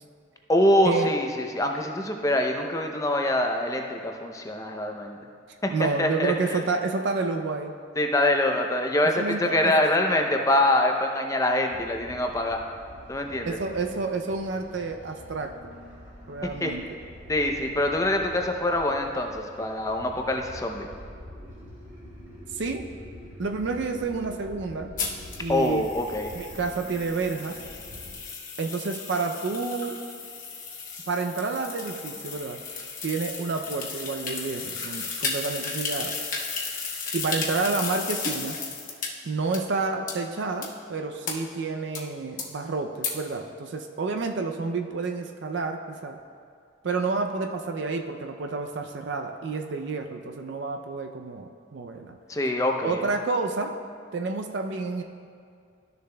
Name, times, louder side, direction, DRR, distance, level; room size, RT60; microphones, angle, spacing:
voice 1, 0.5-5.2 5.6-6.6 8.0-12.6 13.1-13.6 16.6-16.7 17.3-20.9 25.5-26.3 52.3-53.0, left 1 dB, 15° left, 3 dB, 0.5 m, -24 dB
voice 2, 5.7-7.7 9.2-9.7 13.4-15.5 16.3-16.9 22.5-22.8 23.4-24.9 25.4-25.9 26.3-27.6 28.6-30.0 31.1-32.6 33.0-36.1 37.1-38.6 39.2-46.2 46.8-52.1 52.8-53.7 54.1-55.0, right 4 dB, 60° right, 4 dB, 0.4 m, -29 dB
sound 1, 11.7-28.2, left 1 dB, 35° right, 2.1 m, -46 dB
sound 2, 25.0-39.1 39.5-39.6 40.1-40.2 40.6-40.7 41.3-41.4 42.0-42.1 42.4-42.5 43.0-43.1, left 5 dB, 40° left, 0.9 m, -34 dB
13.0 x 6.8 x 2.2 m, 2.3 s
head